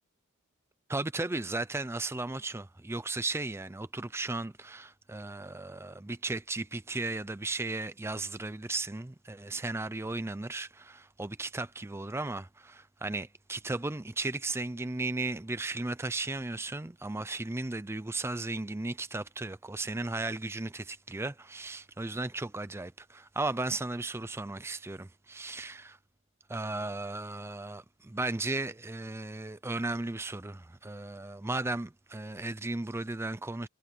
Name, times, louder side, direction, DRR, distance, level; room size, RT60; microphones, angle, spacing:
voice 1, 0.9-26.0 26.5-33.7, right 2 dB, 10° right, 0.4 m, -35 dB
head